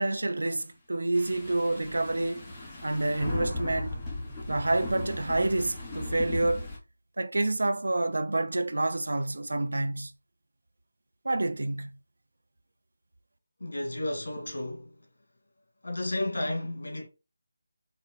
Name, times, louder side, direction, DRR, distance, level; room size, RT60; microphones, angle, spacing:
voice 1, 0.0-2.5 2.8-4.0 4.5-6.7 7.2-10.1 11.2-12.0, right 2 dB, 80° right, 0.7 m, -28 dB
sound 1, 1.1-6.8, left 2 dB, 10° left, 1.1 m, -37 dB
voice 2, 13.6-14.9 15.8-17.1, left 1 dB, 75° left, 2.1 m, -32 dB
4.4 x 3.4 x 3.3 m
figure-of-eight pair, 170°, 0 cm